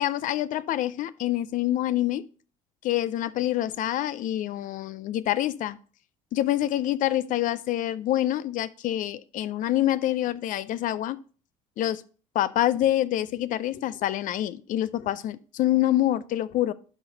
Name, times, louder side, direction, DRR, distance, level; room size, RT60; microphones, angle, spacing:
voice 1, 0.0-2.2 2.8-5.8 6.3-11.2 11.8-12.0 12.3-16.7, left 13 dB, 55° left, 16 dB, 0.5 m, -26 dB
12.0 x 4.0 x 4.0 m, 0.40 s
hypercardioid pair, 70°, 16 cm